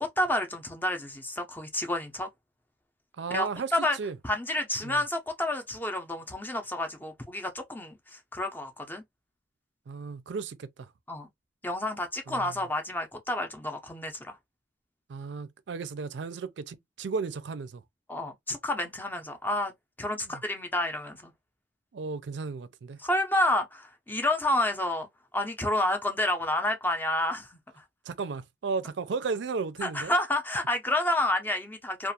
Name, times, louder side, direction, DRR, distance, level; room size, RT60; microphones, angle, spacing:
voice 1, 0.0-2.3 3.3-4.0 4.2-9.0 11.1-11.3 11.6-14.4 18.1-19.7 20.0-21.3 23.0-25.1 25.3-27.8 29.8-32.1, left 1 dB, 10° left, 0.5 m, -29 dB
voice 2, 3.2-4.2 4.8-5.0 9.9-10.9 12.3-12.5 15.1-17.8 20.3-20.4 21.9-23.0 28.1-30.1, right 4 dB, 70° right, 0.4 m, -34 dB
2.4 x 2.4 x 2.7 m
head